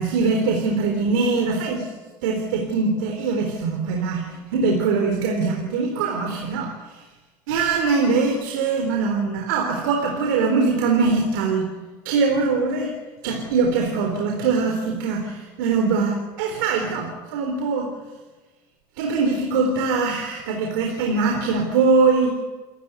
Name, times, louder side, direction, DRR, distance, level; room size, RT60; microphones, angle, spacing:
voice 1, 0.0-1.9 2.2-7.0 7.5-11.7 12.0-12.9 13.2-17.9 19.0-22.4, right 4 dB, 85° right, 3 dB, 4.0 m, -22 dB
29.0 x 13.5 x 9.7 m, 1.3 s
supercardioid pair, 100°, 11 cm